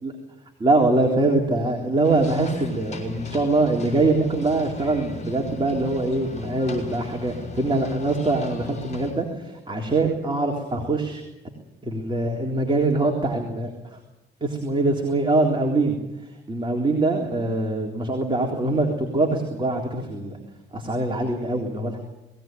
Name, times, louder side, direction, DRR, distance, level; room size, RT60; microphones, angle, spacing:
voice 1, 0.6-11.2 11.8-14.0 14.4-20.4 20.7-22.0, right 2 dB, 25° right, 1 dB, 3.7 m, -23 dB
sound 1, 2.0-9.1, left 1 dB, 35° left, 7.2 m, -37 dB
21.0 x 17.5 x 9.3 m, 0.97 s
cardioid pair, 90°, 20 cm